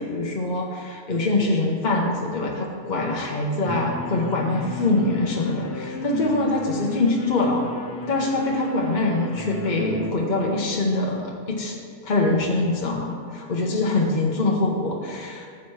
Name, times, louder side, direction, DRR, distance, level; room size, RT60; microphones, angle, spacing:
voice 1, 0.0-7.7 8.0-11.8 12.0-15.5, left 2 dB, 50° left, -2 dB, 1.1 m, -24 dB
sound 1, 3.7-10.1, left 2 dB, 75° left, 1.0 m, -32 dB
14.0 x 7.2 x 3.2 m, 2.1 s
omnidirectional pair, 1.1 m